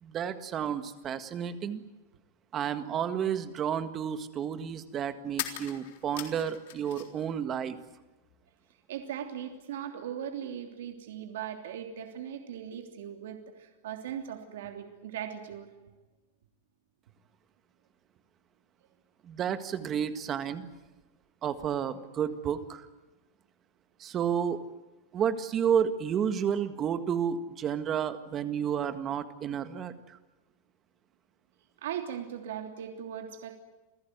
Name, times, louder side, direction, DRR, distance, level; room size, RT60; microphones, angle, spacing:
voice 1, 0.0-1.8 2.5-7.8 19.2-20.7 21.4-22.9 24.0-24.6 25.1-30.2, right 8 dB, 25° right, 11 dB, 1.7 m, -31 dB
sound 1, 5.3-7.3 7.5-8.4, left 13 dB, 60° left, 3.7 m, -40 dB
voice 2, 8.9-15.7 31.8-33.5, right 9 dB, 80° right, 5 dB, 3.2 m, -39 dB
28.5 x 16.0 x 9.5 m, 1.1 s
supercardioid pair, 160°, 0 cm